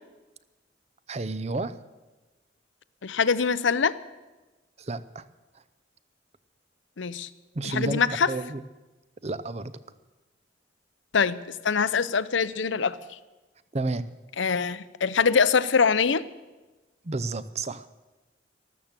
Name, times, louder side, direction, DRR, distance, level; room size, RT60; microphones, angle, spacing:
voice 1, 1.1-1.8 4.8-5.2 5.5-5.6 7.5-8.6 9.2-9.7 13.7-14.1 17.0-17.9, right 2 dB, 35° right, 15 dB, 0.6 m, -31 dB
voice 2, 3.0-4.0 7.0-7.3 7.6-8.3 11.1-11.4 11.6-13.0 14.4-16.2, left 5 dB, 80° left, 16 dB, 0.7 m, -23 dB
13.5 x 13.0 x 7.4 m, 1.2 s
head